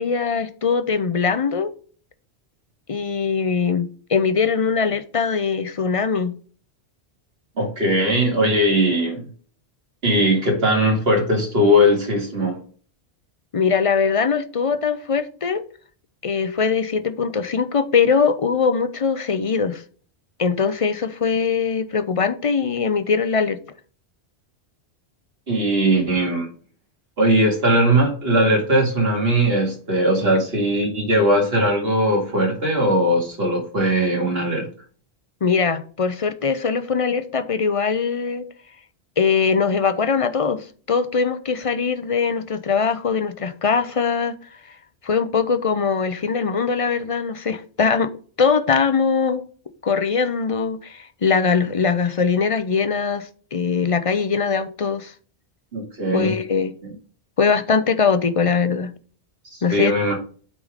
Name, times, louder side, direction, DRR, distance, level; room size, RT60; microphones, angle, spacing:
voice 1, 0.0-1.7 2.9-6.3 13.5-15.6 16.2-19.8 20.4-23.6 35.4-38.5 39.2-44.3 45.0-48.1 48.4-49.4 49.8-55.1 56.1-56.7 57.4-58.9 59.6-60.0, left 5 dB, 35° left, 0.6 m, -21 dB
voice 2, 7.6-9.2 10.0-12.6 25.5-26.5 27.2-34.7 55.7-56.3 59.5-60.1, equal, 65° right, 2.5 m, -19 dB
8.4 x 3.9 x 4.9 m
omnidirectional pair, 1.1 m